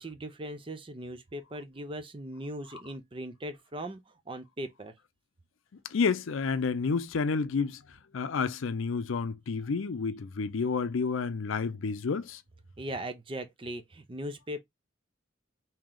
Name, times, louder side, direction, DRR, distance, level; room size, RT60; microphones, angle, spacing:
voice 1, 0.0-4.9 12.8-14.6, right 1 dB, 25° right, 0.5 m, -39 dB
voice 2, 5.9-7.8 8.1-12.4, left 5 dB, 85° left, 0.5 m, -30 dB
3.1 x 2.9 x 3.7 m
head